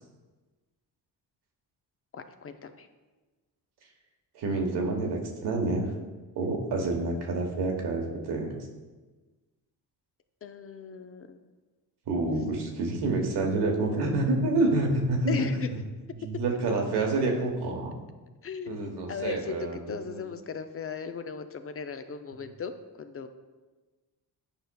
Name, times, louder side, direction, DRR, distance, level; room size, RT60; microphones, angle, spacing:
voice 1, 2.1-2.9 10.4-11.4 15.3-15.7 16.2-16.4 18.4-23.3, left 6 dB, 35° left, 8 dB, 0.4 m, -37 dB
voice 2, 4.3-5.9 6.3-8.5 12.1-15.5 16.2-18.0 18.7-20.2, right 2 dB, 75° right, 1 dB, 1.1 m, -28 dB
8.7 x 5.2 x 2.2 m, 1.3 s
cardioid pair, 70°, 40 cm